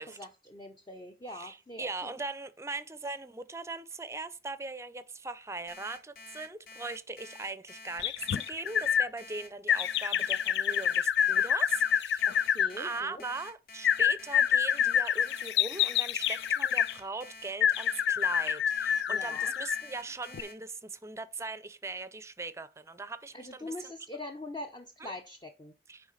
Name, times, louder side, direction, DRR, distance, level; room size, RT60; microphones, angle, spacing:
voice 1, 0.0-2.1 12.2-13.2 19.1-19.5 23.3-25.7, left 1 dB, 25° left, 0.7 m, -43 dB
voice 2, 1.3-23.9 25.0-25.1 25.9-26.1, right 3 dB, 15° right, 0.6 m, -40 dB
Alarm, 5.7-20.5, left 3 dB, 55° left, 2.2 m, -49 dB
sound 1, 8.0-9.1 9.7-12.7 13.8-16.9 17.6-19.9 20.3-20.4, left 9 dB, 70° left, 0.3 m, -27 dB
9.8 x 3.8 x 5.6 m
head